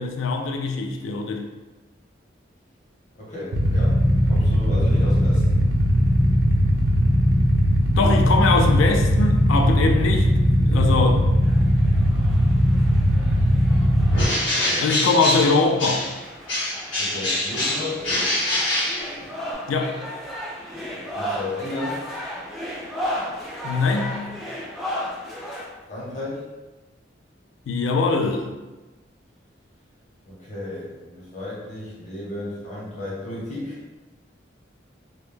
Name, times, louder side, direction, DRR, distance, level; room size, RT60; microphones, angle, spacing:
voice 1, 0.0-1.4 8.0-11.2 14.8-16.0 19.7-20.0 23.6-24.3 27.7-28.5, left 3 dB, 90° left, 4 dB, 0.3 m, -22 dB
voice 2, 3.1-5.6 14.4-14.9 17.0-18.0 20.7-22.0 25.9-26.4 30.3-33.8, left 2 dB, 40° left, -6 dB, 0.8 m, -34 dB
Motorcycle / Idling, 3.5-14.2, equal, 85° right, 0.5 m, -19 dB
sound 1, 11.4-25.7, equal, ahead, 0.3 m, -35 dB
Bird, 14.1-16.2 16.5-19.5, left 1 dB, 70° left, 0.8 m, -25 dB
2.2 x 2.0 x 3.2 m, 1.2 s
head